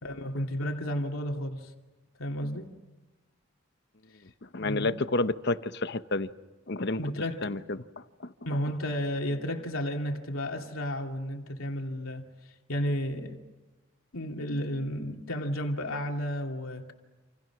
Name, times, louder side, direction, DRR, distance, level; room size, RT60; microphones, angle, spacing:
voice 1, 0.0-1.7 2.2-2.7 4.1-4.2 4.6-5.0 7.0-7.5 8.5-13.4 14.1-16.9, equal, 75° left, 2.7 m, -32 dB
voice 2, 4.5-6.3 6.7-7.0 7.4-7.8 8.2-8.3, left 2 dB, 55° left, 1.0 m, -29 dB
28.5 x 28.5 x 6.1 m
head